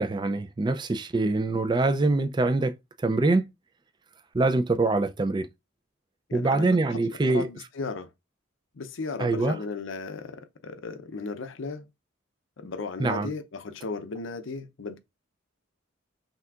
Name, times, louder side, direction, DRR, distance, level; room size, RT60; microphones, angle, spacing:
voice 1, 0.0-2.7 3.0-3.5 4.3-5.5 6.3-7.5 9.2-9.6 13.0-13.3, right 2 dB, 20° right, 0.3 m, -24 dB
voice 2, 6.3-8.1 8.7-11.9 12.6-15.0, left 4 dB, 70° left, 0.6 m, -36 dB
5.8 x 2.7 x 2.4 m
head